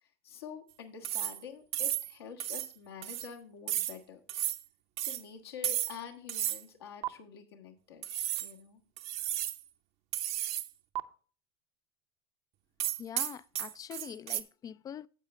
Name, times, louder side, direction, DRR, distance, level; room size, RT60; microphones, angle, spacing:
voice 1, 0.0-4.2 5.0-8.1 8.4-8.8, left 7 dB, 80° left, 1.4 m, -47 dB
Sharpen Knives, 1.0-1.4 1.7-2.1 2.4-2.7 3.0-3.3 3.7-4.0 4.3-4.6 5.0-5.2 5.6-6.0 6.3-6.6 7.0-7.1 8.0-8.5 9.0-9.6 10.1-10.7 10.9-11.0 12.8-14.4, right 12 dB, 50° right, 0.7 m, -33 dB
voice 2, 13.0-15.1, left 9 dB, 30° left, 0.4 m, -44 dB
9.8 x 8.0 x 3.2 m
hypercardioid pair, 80°, 13 cm